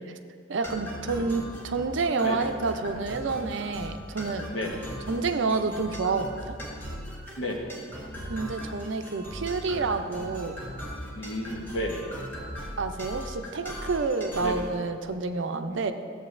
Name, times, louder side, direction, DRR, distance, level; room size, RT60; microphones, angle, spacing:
voice 1, 0.5-4.5 5.1-6.5 8.3-10.6 12.8-15.9, right 4 dB, 65° right, 8 dB, 0.5 m, -29 dB
sound 1, 0.6-14.7, equal, 10° left, 1.5 m, -39 dB
voice 2, 4.5-4.9 7.4-7.8 11.1-12.1 14.4-14.6 15.7-15.9, left 1 dB, 85° left, 1 dB, 1.2 m, -32 dB
14.0 x 7.9 x 2.6 m, 2.1 s
head